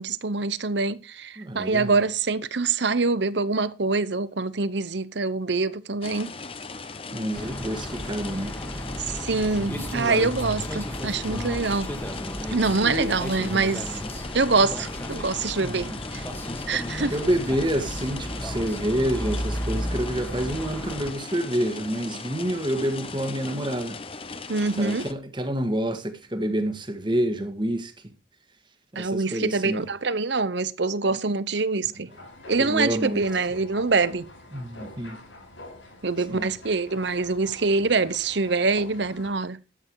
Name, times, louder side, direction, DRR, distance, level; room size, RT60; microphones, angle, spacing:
voice 1, 0.0-6.3 9.0-11.9 12.5-14.0 14.3-16.2 16.7-17.1 24.5-25.0 29.0-32.1 32.5-34.3 36.0-39.6, right 3 dB, 65° right, 0.9 m, -25 dB
voice 2, 1.4-1.9 7.1-8.6 12.8-13.2 15.6-16.0 17.1-24.0 24.8-28.1 28.9-29.8 31.1-31.2 32.6-33.2 34.5-35.2 36.3-36.5, right 1 dB, 25° right, 1.7 m, -28 dB
sound 1, 6.0-25.1, left 4 dB, 30° left, 0.9 m, -38 dB
sound 2, 7.3-21.1, equal, 10° left, 1.7 m, -33 dB
sound 3, 32.1-39.3, left 1 dB, 80° left, 7.0 m, -45 dB
13.0 x 9.0 x 4.7 m
head